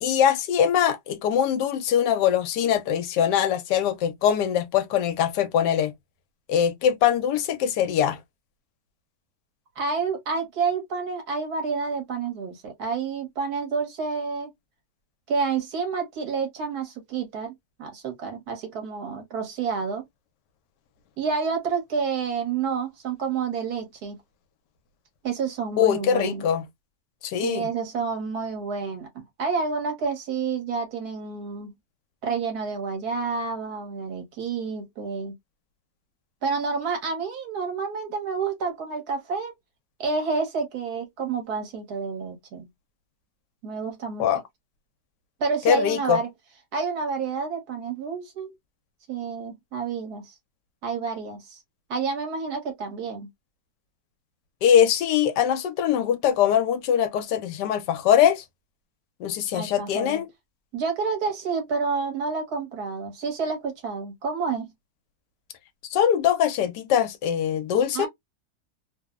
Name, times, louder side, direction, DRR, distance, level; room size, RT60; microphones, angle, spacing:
voice 1, 0.0-5.9 6.5-8.2 25.8-26.6 27.2-27.7 44.2-44.4 45.6-46.2 54.6-58.4 59.2-60.3 65.9-68.1, left 9 dB, 80° left, 1.2 m, -22 dB
voice 2, 9.8-14.5 15.3-20.0 21.2-24.2 25.2-26.5 27.4-31.7 32.2-35.3 36.4-39.5 40.0-42.7 43.6-44.2 45.4-46.3 46.7-48.5 49.1-50.3 50.8-51.6 51.9-53.3 59.5-60.2 60.7-64.7 67.9-68.1, right 5 dB, 65° right, 1.4 m, -29 dB
3.1 x 2.0 x 2.2 m
omnidirectional pair, 1.8 m